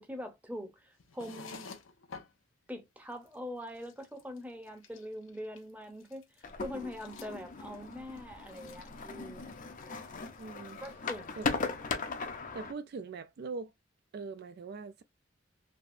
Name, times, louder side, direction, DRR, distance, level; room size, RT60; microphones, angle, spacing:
voice 1, 0.0-1.7 2.7-6.2 6.6-9.6 10.8-11.6, equal, 10° right, 0.8 m, -43 dB
sound 1, 1.0-2.3 2.8-2.9 3.1-3.3 3.6-4.4 4.6-5.7 6.0-9.1 9.4-9.9 10.2-10.8 11.1-11.5, left 5 dB, 85° left, 0.7 m, -51 dB
sound 2, 6.4-12.7, left 4 dB, 45° left, 0.6 m, -38 dB
voice 2, 10.4-10.8 11.4-11.5 12.5-13.7 14.1-15.0, right 4 dB, 55° right, 0.3 m, -41 dB
3.4 x 2.8 x 2.5 m
head